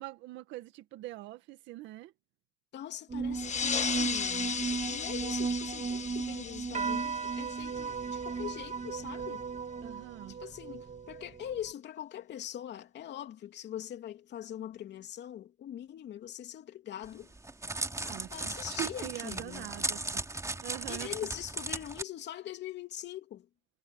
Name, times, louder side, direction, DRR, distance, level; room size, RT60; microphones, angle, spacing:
voice 1, 0.0-2.1 9.8-10.4 18.0-20.2 20.6-21.1, right 16 dB, 85° right, 1.9 m, -43 dB
voice 2, 2.7-9.5 10.4-17.3 18.3-19.7 20.9-23.5, left 11 dB, 70° left, 3.0 m, -42 dB
sound 1, 3.1-11.7, right 5 dB, 40° right, 2.7 m, -36 dB
sound 2, 3.3-8.4, left 7 dB, 40° left, 1.3 m, -36 dB
Crackle, 17.1-22.0, right 2 dB, 15° right, 2.8 m, -37 dB
supercardioid pair, 75°, 19 cm